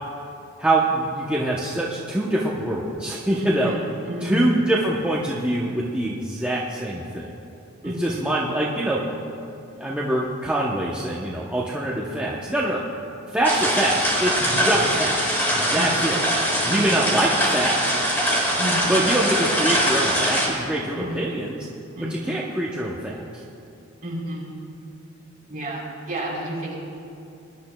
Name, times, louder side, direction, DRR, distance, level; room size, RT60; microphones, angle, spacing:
voice 1, 0.6-3.7 4.2-7.3 7.8-9.0 9.8-12.8 13.3-15.2 15.5-16.2 16.6-17.9 18.9-21.6 22.1-23.2, right 1 dB, 5° right, -5 dB, 0.7 m, -24 dB
voice 2, 3.3-3.8 4.0-4.4 7.8-8.3 14.5-14.9 15.7-16.2 16.7-17.1 18.6-19.0 21.0-21.4 22.0-22.4 24.0-24.4 25.5-26.7, equal, 35° right, -5 dB, 3.1 m, -31 dB
sound 1, 13.4-20.5, equal, 10° left, 1.7 m, -22 dB
21.5 x 10.5 x 2.2 m, 2.6 s
head